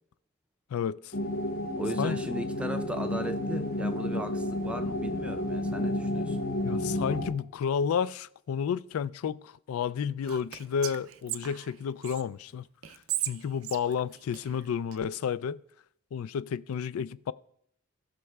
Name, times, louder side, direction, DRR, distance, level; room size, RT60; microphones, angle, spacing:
voice 1, 0.7-1.1 2.0-2.2 6.6-12.7 13.3-15.6 16.1-17.3, left 7 dB, 80° left, 0.3 m, -31 dB
sound 1, 1.1-7.3, left 1 dB, 45° left, 0.8 m, -31 dB
voice 2, 1.8-6.5, right 1 dB, 5° right, 0.5 m, -37 dB
Whispering, 10.2-12.2 12.8-15.0, right 13 dB, 70° right, 0.5 m, -37 dB
18.5 x 6.5 x 2.3 m
head